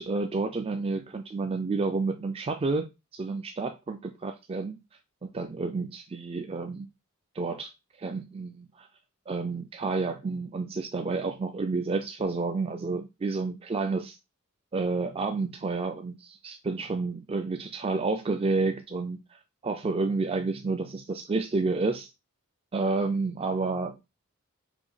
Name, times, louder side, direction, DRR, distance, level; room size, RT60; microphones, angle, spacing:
voice 1, 0.0-4.8 5.2-6.9 7.3-7.7 8.0-8.9 9.3-14.2 14.7-19.2 19.6-22.1 22.7-24.0, right 3 dB, 25° right, 0.4 m, -30 dB
4.9 x 2.6 x 4.0 m
head